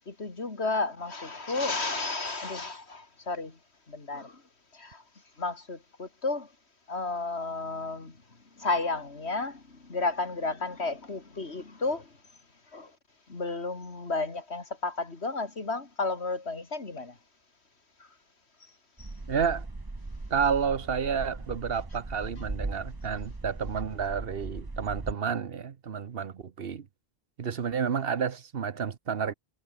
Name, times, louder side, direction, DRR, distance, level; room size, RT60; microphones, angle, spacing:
voice 1, 0.1-3.6 3.9-4.4 4.7-5.0 5.4-6.5 6.9-8.2 8.5-12.2 12.7-12.9 13.3-17.2 19.0-19.1, left 3 dB, 80° left, 3.2 m, -32 dB
sound 1, 19.0-25.1, right 2 dB, 20° right, 1.3 m, -38 dB
voice 2, 19.3-19.7 20.3-26.9 27.4-29.3, right 7 dB, 65° right, 1.2 m, -30 dB
omnidirectional pair, 1.1 m